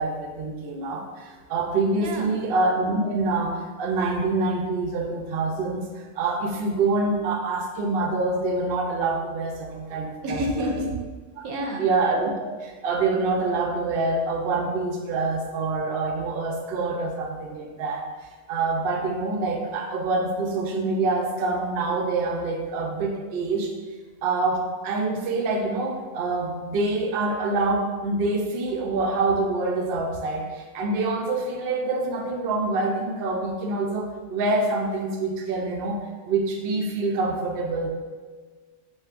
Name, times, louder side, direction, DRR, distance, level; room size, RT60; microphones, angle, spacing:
voice 1, 0.0-10.8 11.4-11.5 11.8-23.7 24.2-37.9, right 3 dB, 60° right, 1 dB, 0.6 m, -26 dB
voice 2, 2.0-2.3 10.2-10.9 11.4-11.8, equal, 80° right, 2 dB, 1.1 m, -28 dB
5.2 x 3.8 x 2.5 m, 1.4 s
omnidirectional pair, 1.5 m